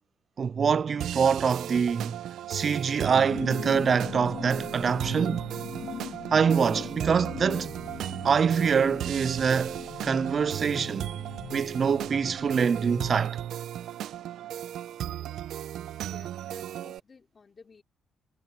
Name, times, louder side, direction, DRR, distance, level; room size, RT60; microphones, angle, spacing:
voice 1, 0.4-2.2 2.5-5.5 6.3-7.7 8.2-9.8 10.0-11.1 11.5-13.4, right 6 dB, 45° right, 0.3 m, -25 dB
sound 1, 1.0-17.0, right 11 dB, 75° right, 0.8 m, -36 dB
sound 2, 3.1-13.3, left 9 dB, 65° left, 0.4 m, -41 dB
voice 2, 16.0-17.8, left 5 dB, 35° left, 4.0 m, -54 dB
cardioid pair, 90°, 0 cm